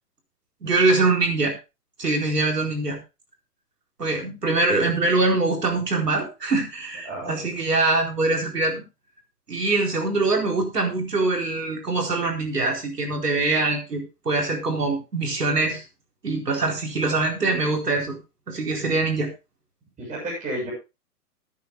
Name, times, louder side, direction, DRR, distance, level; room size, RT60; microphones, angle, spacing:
voice 1, 0.6-1.5 2.0-3.0 4.0-8.8 9.5-15.8 16.2-18.2 18.5-19.3, right 3 dB, 80° right, 1 dB, 4.4 m, -23 dB
voice 2, 7.0-7.4 20.0-20.7, right 1 dB, 15° right, -6 dB, 7.8 m, -31 dB
21.0 x 9.4 x 2.3 m, 0.27 s
hypercardioid pair, 125°, 47 cm